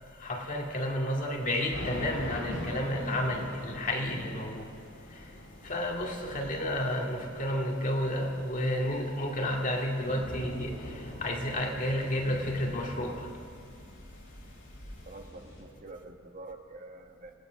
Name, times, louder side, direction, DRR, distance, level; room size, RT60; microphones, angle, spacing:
voice 1, 0.2-4.7 5.1-5.2 5.6-13.3, left 1 dB, 40° left, 2.3 m, -31 dB
sound 1, 1.4-15.6, equal, 85° left, 7.7 m, -44 dB
voice 2, 15.0-17.3, right 2 dB, 40° right, 1.7 m, -46 dB
26.5 x 18.0 x 6.3 m
head